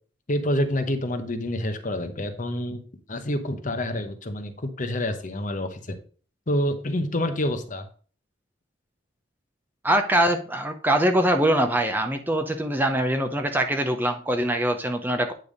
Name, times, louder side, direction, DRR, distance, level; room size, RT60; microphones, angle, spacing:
voice 1, 0.3-2.8 3.1-6.0 6.5-7.9, left 1 dB, 40° left, 7 dB, 1.0 m, -27 dB
voice 2, 9.8-15.3, right 1 dB, 10° right, 5 dB, 0.6 m, -23 dB
9.4 x 3.4 x 6.4 m, 0.41 s
head